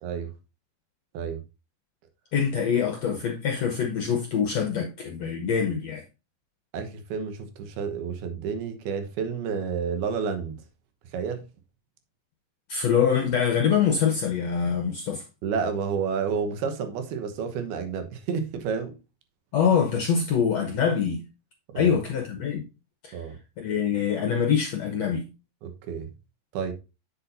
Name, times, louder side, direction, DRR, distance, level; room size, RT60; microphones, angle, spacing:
voice 1, 0.0-0.3 1.1-1.4 6.7-10.6 11.1-11.4 15.4-18.9 21.7-22.0 23.1-23.4 25.6-26.1 26.5-26.7, right 6 dB, 80° right, 3.1 m, -30 dB
voice 2, 2.3-6.0 12.7-15.2 19.5-21.2 21.7-22.7 23.0-23.2 23.6-25.3, left 7 dB, 70° left, 1.6 m, -24 dB
8.2 x 7.5 x 2.6 m
omnidirectional pair, 4.4 m